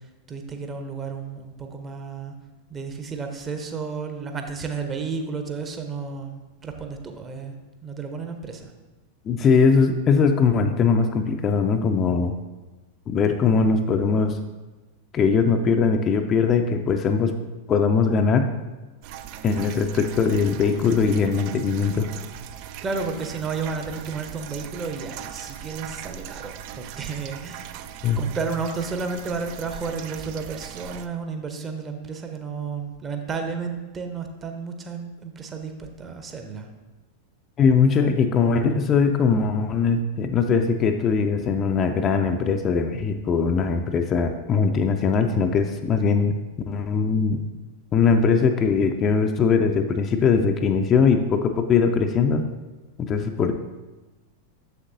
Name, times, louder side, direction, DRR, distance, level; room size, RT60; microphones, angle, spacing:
voice 1, 0.3-2.4 2.7-8.7 22.8-27.8 28.2-36.7, right 5 dB, 20° right, 5 dB, 0.7 m, -32 dB
voice 2, 9.3-12.4 13.1-14.4 15.1-17.3 17.7-18.5 19.4-22.1 28.0-28.2 37.6-46.3 46.7-47.4 47.9-52.5 53.0-53.5, left 5 dB, 30° left, 5 dB, 0.4 m, -21 dB
sound 1, 19.0-31.1, right 10 dB, 45° right, 0.3 m, -39 dB
7.0 x 6.7 x 2.6 m, 1.2 s
figure-of-eight pair, 90°, 0 cm